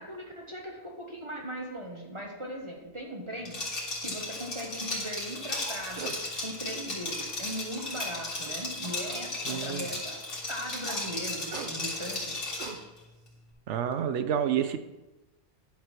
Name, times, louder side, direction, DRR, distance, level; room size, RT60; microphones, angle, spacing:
voice 1, 0.0-6.2 6.4-12.4, equal, 25° right, -1 dB, 1.3 m, -39 dB
sound 1, 2.8-3.0 5.7-6.2 6.6-7.4 8.4-9.1 11.2-13.2 13.7-13.9, right 5 dB, 50° right, 0.9 m, -43 dB
Liquid, 3.5-12.8, left 2 dB, 80° left, 2.6 m, -35 dB
voice 2, 9.5-9.9 13.7-14.8, right 9 dB, 75° right, 10 dB, 0.9 m, -29 dB
10.5 x 4.7 x 5.9 m, 1.1 s
omnidirectional pair, 1.2 m